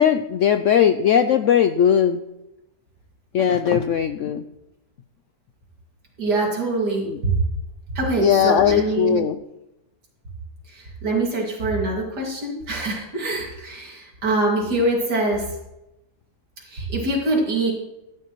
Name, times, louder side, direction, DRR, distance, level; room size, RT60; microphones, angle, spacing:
voice 1, 0.0-2.2 3.3-4.4 7.1-7.2 8.2-9.4, left 8 dB, 70° left, 9 dB, 0.7 m, -18 dB
voice 2, 6.2-7.3 7.9-9.3 10.7-15.4 16.7-17.7, right 2 dB, 85° right, -2 dB, 2.9 m, -24 dB
13.5 x 10.5 x 3.1 m, 0.92 s
omnidirectional pair, 1.7 m